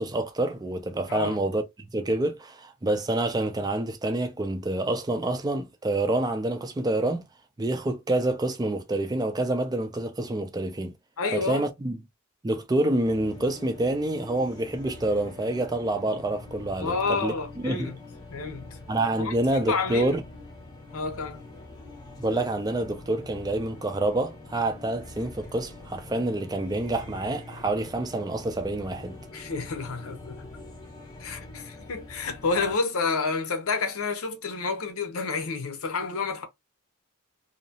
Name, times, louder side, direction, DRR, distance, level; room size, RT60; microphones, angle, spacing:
voice 1, 0.0-1.6 1.9-7.3 7.6-10.9 11.3-12.0 12.4-17.3 17.6-17.9 18.9-20.2 22.2-29.2, right 2 dB, 15° right, 0.4 m, -27 dB
voice 2, 11.2-11.7 16.8-18.0 18.3-18.7 19.2-19.3 19.7-20.2 20.9-21.4 29.3-30.5 31.2-36.4, left 4 dB, 70° left, 0.7 m, -29 dB
sound 1, 13.0-32.8, left 2 dB, 20° left, 0.7 m, -44 dB
2.7 x 2.0 x 2.7 m
head